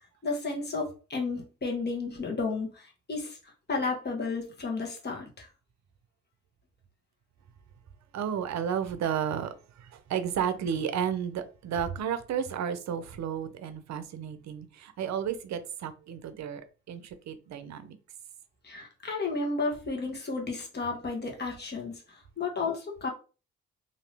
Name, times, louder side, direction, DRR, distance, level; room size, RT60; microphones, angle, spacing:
voice 1, 0.2-3.4 3.7-5.5 18.6-23.1, left 3 dB, 35° left, 0 dB, 1.3 m, -32 dB
voice 2, 8.1-18.0, right 8 dB, 65° right, 10 dB, 0.7 m, -32 dB
2.9 x 2.7 x 3.3 m, 0.34 s
supercardioid pair, 65°, 30 cm